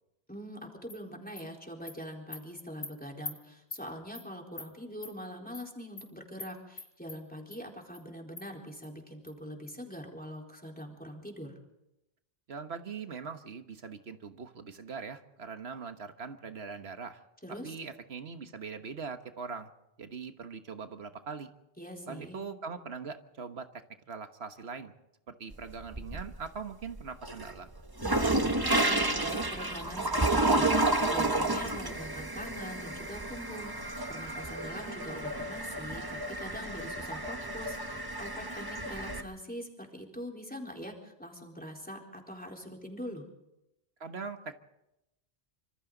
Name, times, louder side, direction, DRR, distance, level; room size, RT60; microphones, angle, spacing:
voice 1, 0.3-11.5 17.4-17.7 21.8-22.4 28.0-43.3, equal, 10° left, 0 dB, 4.1 m, -43 dB
Animal, 0.9-1.0 1.4-1.5 1.9-2.0 2.3-2.4 2.8-2.9 3.2-3.3 3.7-3.8 4.1-4.3 4.6-4.7 5.0-5.1 5.5-5.7 6.0-6.1 6.4-6.5 6.8-7.2 7.5-7.6 7.9-8.0 8.4-8.5 8.8-8.9 9.3-9.4 9.7-9.8, left 3 dB, 80° left, 3.0 m, -42 dB
voice 2, 12.5-17.2 17.6-19.7 20.0-21.5 22.1-23.8 24.1-24.9 25.3-27.7 44.0-44.5, right 5 dB, 90° right, 8 dB, 1.5 m, -41 dB
sound 1, 25.5-26.5 26.9-39.2, right 2 dB, 20° right, 1.3 m, -31 dB
26.0 x 26.0 x 3.9 m, 0.89 s
omnidirectional pair, 1.0 m